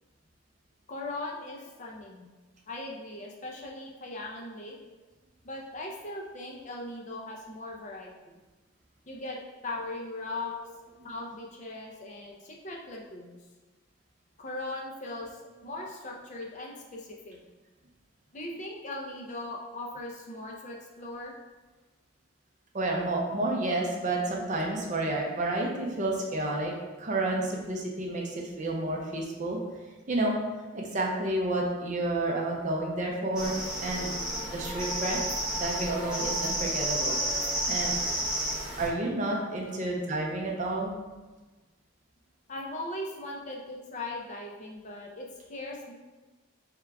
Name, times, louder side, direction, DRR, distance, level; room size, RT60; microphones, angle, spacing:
voice 1, 0.9-2.3 2.7-4.7 5.4-8.4 9.1-10.5 11.0-13.4 14.4-17.4 18.3-21.3 39.7-39.8 42.5-45.9, left 2 dB, 35° left, -1 dB, 0.5 m, -39 dB
voice 2, 22.7-26.7 27.0-29.6 30.1-30.4 30.7-35.2 35.5-38.0 38.8-40.9, right 2 dB, 35° right, 0 dB, 0.5 m, -30 dB
sound 1, 33.4-38.9, right 1 dB, 5° right, 0.9 m, -31 dB
3.6 x 3.4 x 3.4 m, 1.2 s
head